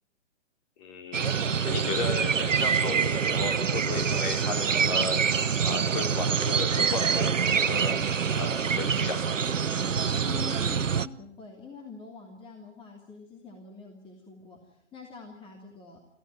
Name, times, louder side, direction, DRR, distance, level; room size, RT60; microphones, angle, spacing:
voice 1, 0.8-1.3 1.6-8.0 8.3-9.4, left 4 dB, 35° left, 3 dB, 4.5 m, -35 dB
sound 1, 1.1-11.1, right 6 dB, 90° right, 0.9 m, -26 dB
voice 2, 10.3-16.0, left 4 dB, 15° left, 0 dB, 2.8 m, -45 dB
24.5 x 15.0 x 9.1 m, 0.79 s
hypercardioid pair, 135°, 37 cm